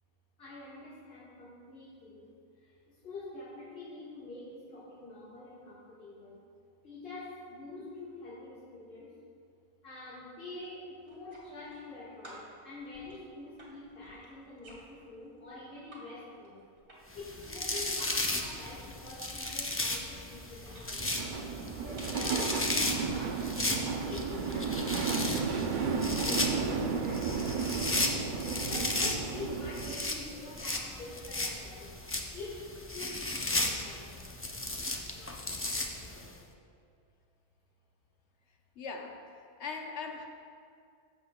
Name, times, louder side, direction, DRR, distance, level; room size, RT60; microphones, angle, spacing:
voice 1, 0.4-2.3 2.6-6.4 6.8-9.1 9.8-16.6 17.1-21.4 21.8-28.1 28.7-31.9 32.3-34.0, left 2 dB, 60° left, -10 dB, 1.9 m, -46 dB
sound 1, 11.0-11.9 12.2-16.0 16.3-17.2 17.5-20.9 21.6-22.3, right 1 dB, 70° right, 2.1 m, -55 dB
sound 2, 17.1-36.3, left 2 dB, 20° left, 0.3 m, -35 dB
sound 3, 21.0-29.9, right 5 dB, 55° right, 0.6 m, -33 dB
voice 2, 38.8-40.3, left 4 dB, 75° left, 2 dB, 1.1 m, -41 dB
13.5 x 7.0 x 2.2 m, 2.3 s
omnidirectional pair, 1.2 m